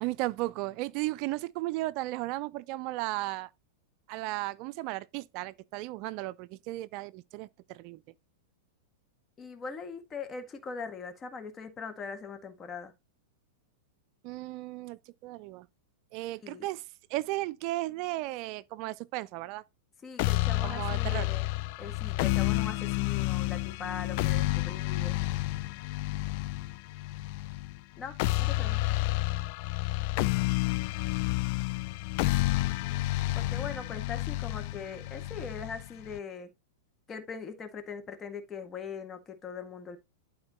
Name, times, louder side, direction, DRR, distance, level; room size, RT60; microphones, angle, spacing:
voice 1, 0.0-3.5 4.1-8.0 14.2-15.7 16.1-16.8 17.1-19.6 20.6-21.3, right 18 dB, 45° right, 0.5 m, -35 dB
voice 2, 9.4-12.9 16.4-16.7 20.0-21.5 21.8-25.2 28.0-28.8 33.3-36.5 37.1-40.0, left 5 dB, 25° left, 1.7 m, -41 dB
sound 1, 20.2-36.2, left 18 dB, 50° left, 0.4 m, -30 dB
11.5 x 4.4 x 2.8 m
figure-of-eight pair, 95°, 0 cm